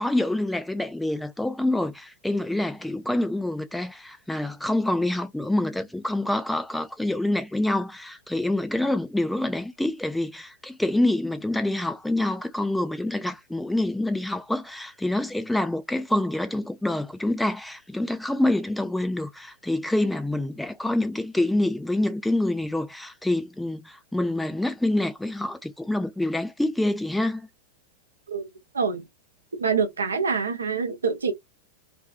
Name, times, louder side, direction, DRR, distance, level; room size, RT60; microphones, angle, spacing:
voice 1, 0.0-27.5, left 1 dB, 5° left, 0.4 m, -26 dB
voice 2, 29.6-31.3, right 5 dB, 75° right, 0.6 m, -25 dB
2.5 x 2.3 x 2.3 m
figure-of-eight pair, 90°, 0 cm